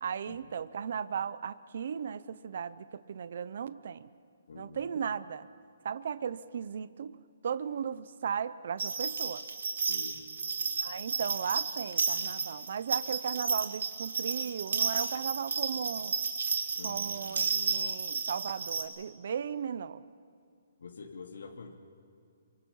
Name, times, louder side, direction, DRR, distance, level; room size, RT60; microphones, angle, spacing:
voice 1, 0.0-4.1 4.6-5.5 5.8-7.2 7.4-9.4 10.8-16.1 16.8-20.0, right 7 dB, 45° right, 15 dB, 0.7 m, -36 dB
voice 2, 4.5-4.8 9.9-10.3 16.7-17.2 20.8-21.8, left 4 dB, 70° left, 1 dB, 2.7 m, -46 dB
sound 1, 8.8-18.8, right 5 dB, 75° right, 2.9 m, -32 dB
27.5 x 25.0 x 5.6 m, 2.4 s
hypercardioid pair, 175°, 0 cm